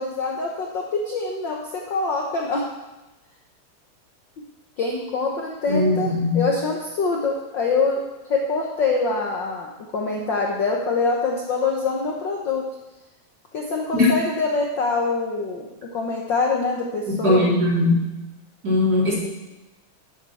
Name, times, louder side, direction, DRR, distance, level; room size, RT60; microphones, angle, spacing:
voice 1, 0.0-2.6 4.8-12.7 13.5-17.4, left 3 dB, 85° left, 0 dB, 1.0 m, -25 dB
voice 2, 5.7-6.4 13.9-14.1 17.1-18.0 18.6-19.1, left 1 dB, 30° right, -5 dB, 3.4 m, -19 dB
10.5 x 10.5 x 4.2 m, 1.0 s
omnidirectional pair, 3.6 m